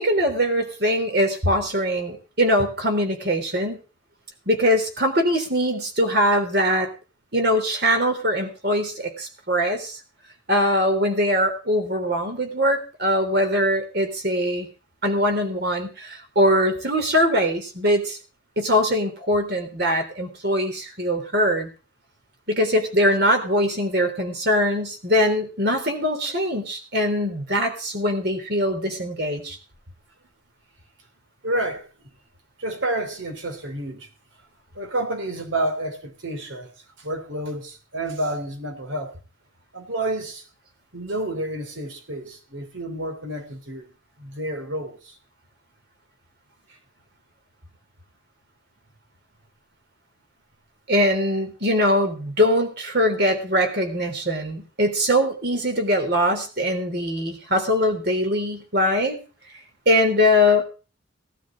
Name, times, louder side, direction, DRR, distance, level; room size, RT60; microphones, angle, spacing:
voice 1, 0.0-3.8 4.5-6.9 7.3-10.0 10.5-14.7 15.0-18.2 18.6-21.7 22.5-29.6 50.9-59.2 59.9-60.6, equal, 55° right, 3.5 m, -22 dB
voice 2, 31.4-31.9 32.6-34.1 34.7-36.7 37.0-39.1 39.7-40.5 40.9-43.9 44.2-45.2, right 1 dB, 75° right, 3.0 m, -29 dB
17.5 x 12.5 x 3.8 m
head